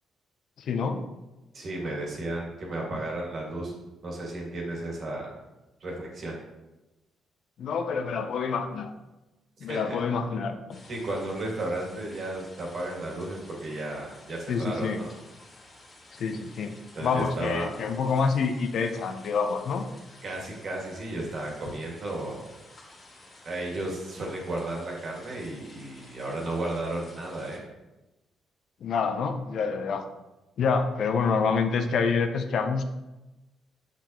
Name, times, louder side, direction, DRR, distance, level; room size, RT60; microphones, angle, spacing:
voice 1, 0.6-1.1 7.6-8.9 9.6-10.8 14.5-15.0 16.2-19.9 28.8-30.1 30.6-32.8, left 5 dB, 65° left, 7 dB, 0.6 m, -27 dB
voice 2, 1.5-3.7 4.0-5.3 5.8-6.4 9.7-10.0 10.9-15.1 16.9-17.7 20.2-22.4 23.5-27.6, right 2 dB, 50° right, -2 dB, 2.0 m, -33 dB
sound 1, 10.7-27.6, left 2 dB, 40° left, 1.9 m, -52 dB
6.6 x 5.8 x 3.0 m, 1.0 s
cardioid pair, 90°, 0 cm